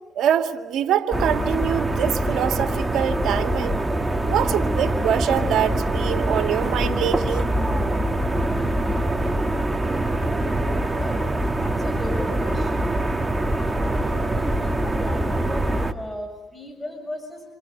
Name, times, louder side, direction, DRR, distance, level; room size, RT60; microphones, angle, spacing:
voice 1, 0.2-3.8 4.3-7.5, right 9 dB, 80° right, 5 dB, 2.2 m, -24 dB
sound 1, 1.1-15.9, right 1 dB, 15° right, 2.3 m, -24 dB
voice 2, 10.2-12.9 13.6-17.4, left 1 dB, 10° left, 4 dB, 7.2 m, -37 dB
28.5 x 27.0 x 7.0 m, 1.1 s
cardioid pair, 90°, 0 cm